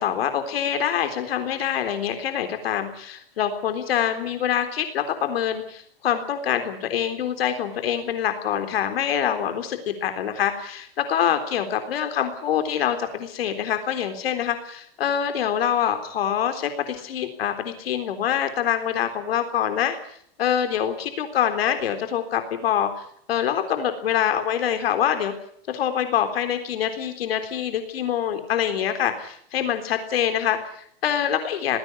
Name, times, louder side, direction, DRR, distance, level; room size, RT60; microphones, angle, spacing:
voice 1, 0.0-20.0 20.4-22.9 23.3-25.3 25.7-31.8, left 9 dB, 80° left, 7 dB, 3.8 m, -25 dB
19.0 x 17.0 x 9.8 m, 0.65 s
supercardioid pair, 160°, 29 cm